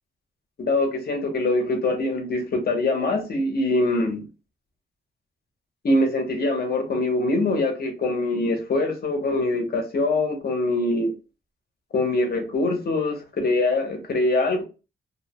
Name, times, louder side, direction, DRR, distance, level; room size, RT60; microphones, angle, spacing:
voice 1, 0.6-4.3 5.8-11.1 11.9-14.6, left 2 dB, 50° left, 0.7 m, -23 dB
2.7 x 2.0 x 2.7 m
wide cardioid pair, 180°, 21 cm